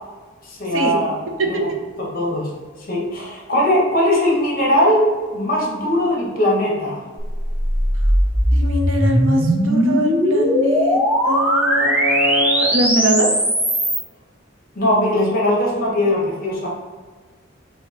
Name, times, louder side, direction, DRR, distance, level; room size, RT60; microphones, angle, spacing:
voice 1, 0.4-1.2 1.5-1.7 2.0-2.5 2.9-7.0 14.7-16.7, left 1 dB, 45° left, -2 dB, 1.2 m, -20 dB
voice 2, 1.4-1.8 8.5-13.3, right 1 dB, 75° right, 3 dB, 0.7 m, -22 dB
sound 1, 7.2-14.0, equal, 5° right, 0.5 m, -18 dB
5.6 x 2.8 x 3.0 m, 1.4 s
head